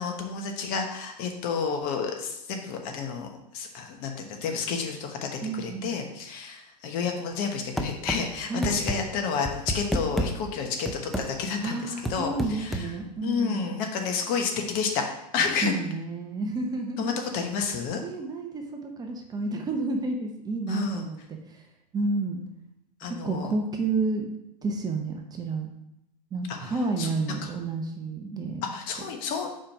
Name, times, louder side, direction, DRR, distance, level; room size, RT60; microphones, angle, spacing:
voice 1, 0.0-12.9 13.2-15.0 15.3-15.7 17.0-18.0 20.7-21.0 23.0-23.5 26.5-27.1 27.4-27.5 28.7-29.5, left 5 dB, 45° left, 3 dB, 1.1 m, -30 dB
voice 2, 5.4-6.0 8.5-8.8 11.6-13.7 15.4-17.2 18.0-21.7 21.9-22.4 23.0-24.3 24.6-25.7 26.3-28.6, right 3 dB, 20° right, 3 dB, 0.8 m, -30 dB
sound 1, 7.8-8.2 8.6-9.0 9.4-10.3 10.9-11.3 12.0-12.9, right 1 dB, ahead, 0.5 m, -28 dB
5.0 x 4.4 x 5.6 m, 0.82 s
hypercardioid pair, 125°, 21 cm